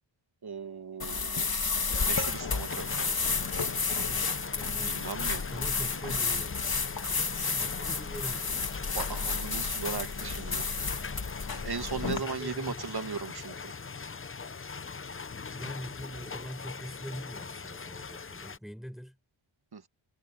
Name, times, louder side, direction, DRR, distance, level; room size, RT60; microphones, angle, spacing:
voice 1, 0.4-1.5 2.1-3.1 4.8-5.4 8.9-10.7 11.6-13.7 19.7-19.9, right 5 dB, 50° right, 2.1 m, -37 dB
sound 1, 1.0-12.2, left 4 dB, 45° left, 2.0 m, -31 dB
sound 2, 1.9-18.6, left 5 dB, 25° left, 0.7 m, -41 dB
voice 2, 3.8-5.1 5.3-6.6 7.5-8.9 11.8-12.9 15.5-19.2, equal, ahead, 7.2 m, -43 dB
wide cardioid pair, 65°, 49 cm